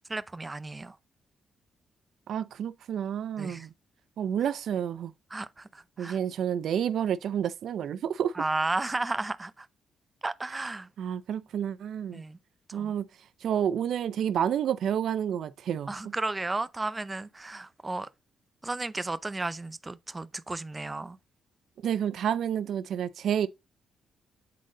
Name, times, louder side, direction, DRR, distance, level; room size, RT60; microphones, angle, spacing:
voice 1, 0.1-1.0 3.4-3.7 5.3-6.2 8.4-9.7 10.2-10.9 12.1-12.4 12.7-12.9 15.9-18.1 18.6-21.2, right 2 dB, 20° right, 0.5 m, -33 dB
voice 2, 2.3-3.7 4.2-5.1 6.0-8.4 11.0-12.2 12.7-13.1 13.4-16.1 21.8-23.5, right 9 dB, 75° right, 0.5 m, -29 dB
8.4 x 3.9 x 3.7 m
cardioid pair, 90°, 0 cm